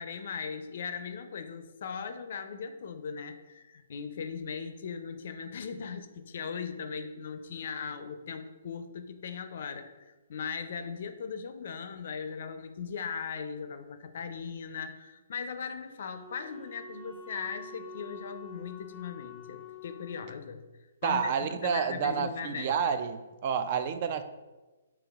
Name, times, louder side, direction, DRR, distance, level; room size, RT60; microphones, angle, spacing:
voice 1, 0.0-20.6 21.0-22.7, left 6 dB, 60° left, 9 dB, 0.4 m, -39 dB
Wind instrument woodwind instrument, 16.0-20.3, left 4 dB, 5° left, 0.7 m, -47 dB
voice 2, 21.0-24.2, right 7 dB, 45° right, 9 dB, 0.3 m, -29 dB
6.9 x 2.9 x 2.3 m, 1.2 s
hypercardioid pair, 140°, 0 cm